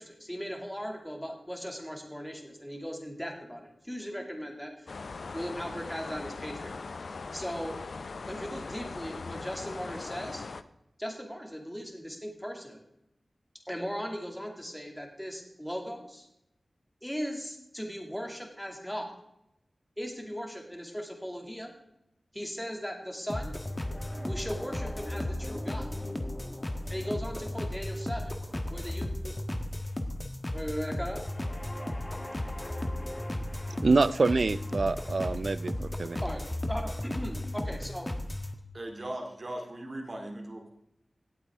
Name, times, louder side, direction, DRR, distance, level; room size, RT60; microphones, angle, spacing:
voice 1, 0.0-4.9 5.3-6.8 7.3-7.8 8.3-10.4 11.0-12.8 13.7-16.3 17.0-19.1 20.0-21.7 22.3-23.5 24.3-25.9 26.9-28.4 28.7-29.3 30.5-31.2 36.2-36.4 36.7-38.1, equal, 5° left, 2 dB, 2.2 m, -38 dB
sound 1, 4.9-10.6, left 4 dB, 80° left, 0.5 m, -40 dB
sound 2, 23.3-38.5, left 1 dB, 25° left, 1.2 m, -35 dB
voice 2, 33.8-36.2, right 3 dB, 65° right, 15 dB, 0.4 m, -26 dB
voice 3, 38.7-40.7, right 1 dB, 50° right, 2 dB, 2.3 m, -38 dB
17.5 x 8.3 x 3.5 m, 0.83 s
wide cardioid pair, 65°, 0 cm